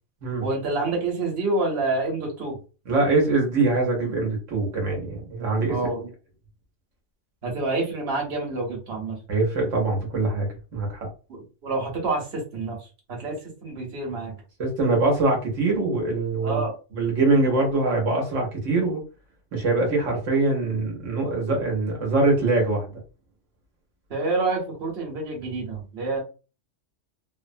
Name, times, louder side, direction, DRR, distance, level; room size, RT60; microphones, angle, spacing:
voice 1, 0.4-2.6 5.7-6.1 7.4-9.2 11.3-12.8 13.1-14.3 16.4-16.7 24.1-26.2, right 3 dB, 55° right, 0 dB, 1.2 m, -28 dB
voice 2, 2.9-5.7 9.3-11.1 14.6-16.6 16.9-19.0 19.5-22.9, right 3 dB, 85° right, 0 dB, 1.2 m, -23 dB
2.8 x 2.0 x 2.5 m, 0.33 s
omnidirectional pair, 1.3 m